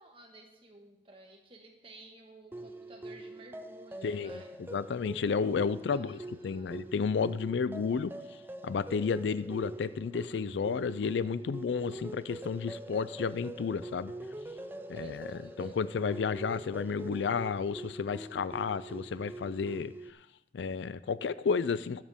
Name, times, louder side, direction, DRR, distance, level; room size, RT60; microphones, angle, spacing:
voice 1, 0.0-4.5 5.9-6.8 14.7-15.7, right 2 dB, 30° right, 1 dB, 1.6 m, -55 dB
sound 1, 2.5-20.1, right 1 dB, 10° right, 0.5 m, -44 dB
voice 2, 4.0-8.1 8.6-14.1 14.9-19.9 20.5-22.0, left 5 dB, 85° left, 17 dB, 0.4 m, -32 dB
21.0 x 7.4 x 3.6 m, 0.89 s
head